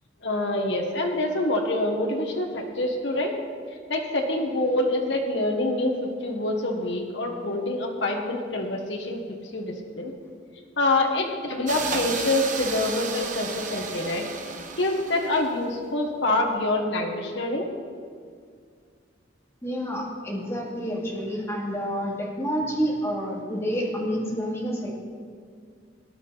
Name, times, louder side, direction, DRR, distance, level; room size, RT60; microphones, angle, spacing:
voice 1, 0.2-3.3 3.9-9.2 9.5-10.1 10.6-14.3 14.8-17.7, left 2 dB, 65° left, 1 dB, 1.5 m, -26 dB
sound 1, 11.7-15.7, right 4 dB, 40° right, 1.2 m, -33 dB
voice 2, 19.6-24.9, equal, 15° left, -3 dB, 2.5 m, -29 dB
19.5 x 11.0 x 4.1 m, 2.1 s
head